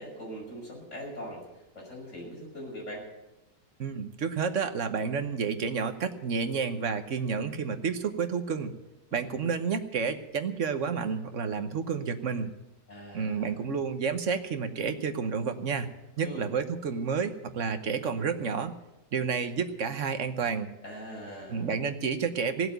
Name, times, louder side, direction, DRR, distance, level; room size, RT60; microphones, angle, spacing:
voice 1, 0.0-1.4 1.7-3.1 12.9-13.5 16.2-16.5 20.8-21.7, equal, 40° left, -3 dB, 6.5 m, -41 dB
voice 2, 3.8-8.7 9.1-12.5 13.1-15.9 16.2-18.7 19.1-20.7 21.5-22.7, right 5 dB, 50° right, 8 dB, 1.2 m, -30 dB
17.0 x 8.0 x 9.2 m, 0.95 s
omnidirectional pair, 1.9 m